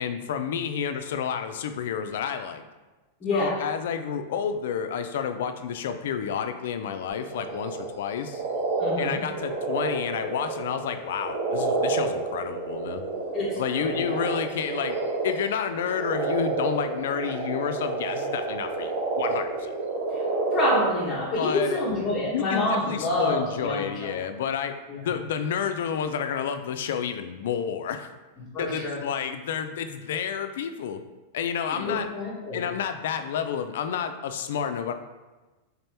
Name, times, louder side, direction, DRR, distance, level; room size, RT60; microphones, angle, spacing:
voice 1, 0.0-2.6 3.3-8.4 9.0-13.0 13.6-15.0 15.2-19.7 21.3-21.8 22.3-28.1 28.6-31.0 31.3-32.1 32.5-34.9, left 7 dB, 75° left, 8 dB, 0.3 m, -30 dB
voice 2, 3.2-3.6 8.8-9.2 13.3-13.5 13.8-14.0 20.1-20.2 20.5-24.1 24.9-25.0 28.4-29.0 31.6-32.6, left 2 dB, 20° left, -7 dB, 1.1 m, -27 dB
sound 1, 7.1-7.9 8.2-21.3, right 3 dB, 60° right, 1.4 m, -29 dB
3.8 x 2.8 x 3.3 m, 1.2 s
supercardioid pair, 155°, 0 cm